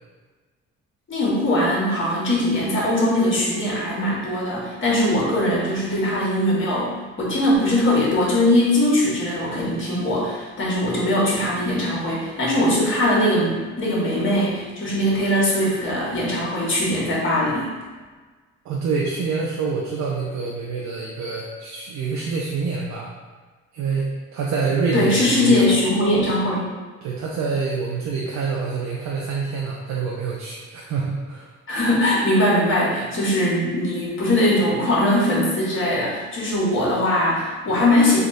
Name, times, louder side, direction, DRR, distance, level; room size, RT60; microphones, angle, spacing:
voice 1, 1.1-17.7 24.9-26.7 31.7-38.2, left 1 dB, 40° left, -5 dB, 1.4 m, -21 dB
voice 2, 18.6-23.1 23.7-25.7 27.0-31.5, right 4 dB, 65° right, -3 dB, 0.6 m, -26 dB
3.4 x 2.4 x 3.8 m, 1.4 s
cardioid pair, 90°, 30 cm